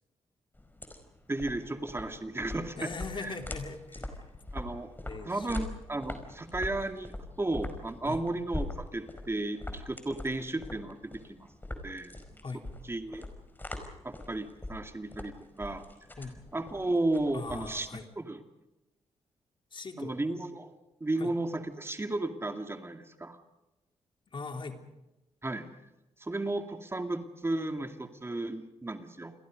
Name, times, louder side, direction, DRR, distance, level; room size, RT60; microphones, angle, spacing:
sound 1, 0.5-18.0, left 2 dB, 15° left, 4.9 m, -42 dB
voice 1, 1.3-2.9 3.2-3.4 4.5-4.9 5.3-7.1 7.4-12.1 12.9-13.3 14.0-15.8 16.5-17.9 18.2-18.4 20.0-20.7 21.0-23.4 25.4-25.7 26.2-29.3, right 2 dB, 20° right, 6 dB, 2.4 m, -34 dB
voice 2, 2.8-4.2 5.0-5.6 8.1-8.3 12.4-12.7 16.2-16.4 17.3-18.1 19.7-20.2 21.2-21.3 24.3-24.8, left 4 dB, 45° left, 5 dB, 3.2 m, -40 dB
29.5 x 22.5 x 5.3 m, 0.97 s
cardioid pair, 70°, 11 cm